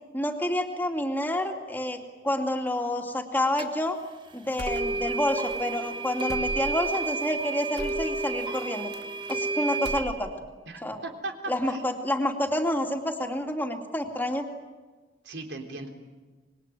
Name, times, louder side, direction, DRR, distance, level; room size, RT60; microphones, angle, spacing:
voice 1, 0.1-4.0 4.3-8.9 9.3-10.3 10.8-11.0 11.5-14.4, left 1 dB, 10° left, 3 dB, 2.5 m, -28 dB
sound 1, 3.6-3.7 4.6-10.0, right 3 dB, 25° right, 1.6 m, -31 dB
sound 2, 4.6-5.2 5.5-5.6 6.3-6.9 7.8-8.1 8.9-9.5 9.7-10.5, right 1 dB, 70° right, 1.3 m, -39 dB
voice 2, 10.7-11.9 15.2-15.9, right 2 dB, 90° right, 4 dB, 3.6 m, -38 dB
26.0 x 21.5 x 9.2 m, 1.3 s
head